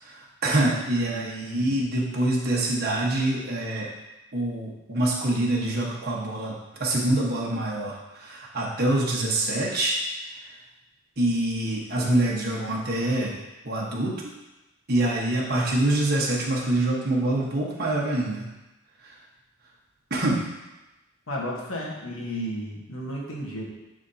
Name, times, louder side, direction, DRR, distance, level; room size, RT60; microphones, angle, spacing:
voice 1, 0.0-3.9 4.3-6.5 6.8-10.0 11.2-13.4 13.6-14.1 14.9-18.4 19.0-19.1 20.1-20.4, right 1 dB, 45° right, -4 dB, 1.2 m, -25 dB
voice 2, 0.9-1.8 21.3-23.7, equal, 65° left, -2 dB, 1.3 m, -34 dB
9.9 x 3.7 x 2.8 m, 1.0 s
head